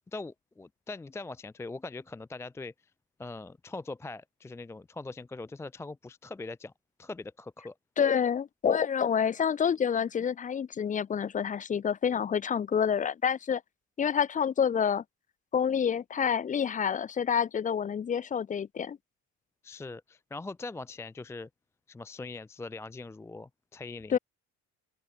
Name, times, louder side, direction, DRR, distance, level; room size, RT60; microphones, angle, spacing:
voice 1, 0.1-2.7 3.2-6.7 7.0-7.7 19.6-21.5 21.9-24.2, left 3 dB, 10° left, 0.5 m, -41 dB
voice 2, 8.0-13.6 14.0-15.0 15.5-19.0 24.1-24.2, left 7 dB, 25° left, 0.9 m, -28 dB
open air
cardioid pair, 155°, 29 cm